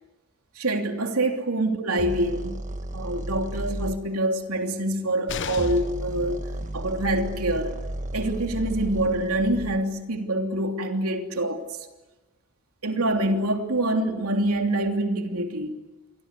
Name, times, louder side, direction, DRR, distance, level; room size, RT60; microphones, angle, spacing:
voice 1, 0.5-2.6 2.9-6.4 6.7-7.8 8.1-11.6 12.8-15.8, right 1 dB, 85° right, 3.1 m, -26 dB
sound 1, 2.0-4.0 5.5-9.8, right 1 dB, 35° right, 1.3 m, -33 dB
sound 2, 5.3-6.0 8.0-8.1 8.4-8.5, left 6 dB, 55° left, 0.8 m, -34 dB
28.5 x 23.5 x 8.4 m
head